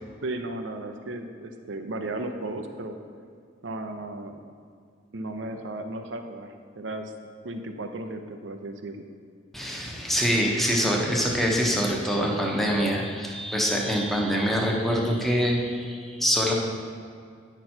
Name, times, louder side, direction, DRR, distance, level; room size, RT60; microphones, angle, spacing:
voice 1, 0.2-3.0 3.6-4.4 5.1-7.1 7.4-9.0, right 2 dB, 70° right, 6 dB, 0.7 m, -35 dB
voice 2, 9.5-16.5, equal, ahead, -2 dB, 1.1 m, -25 dB
9.8 x 6.1 x 4.4 m, 2.2 s
head